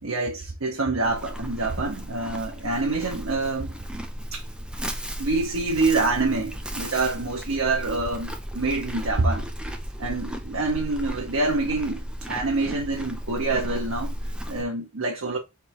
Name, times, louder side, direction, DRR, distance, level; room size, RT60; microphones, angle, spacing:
voice 1, 0.0-3.8 4.3-4.4 5.2-9.5 10.0-15.4, right 3 dB, 85° right, 0.9 m, -26 dB
Livestock farm animals working animals, 1.0-14.6, equal, 5° right, 0.6 m, -35 dB
3.5 x 3.2 x 4.6 m
head